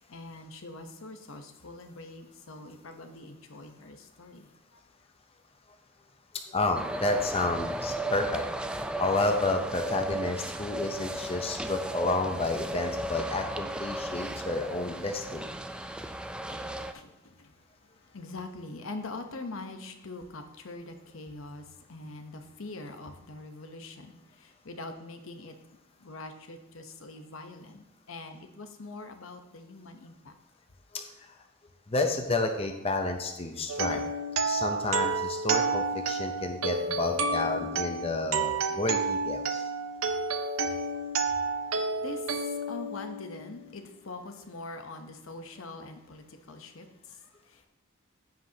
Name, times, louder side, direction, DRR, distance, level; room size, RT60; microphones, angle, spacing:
voice 1, 0.0-4.8 15.7-25.6 26.0-30.3 41.4-47.7, left 2 dB, 75° left, 6 dB, 0.9 m, -44 dB
voice 2, 6.5-8.4 9.0-15.5 30.9-31.0 31.9-34.0 34.4-39.7, left 2 dB, 30° left, 4 dB, 0.7 m, -30 dB
sound 1, 6.7-16.9, right 1 dB, 5° right, 0.3 m, -35 dB
sound 2, 33.7-43.6, right 3 dB, 85° right, 0.7 m, -30 dB
15.0 x 5.1 x 2.8 m, 0.98 s
head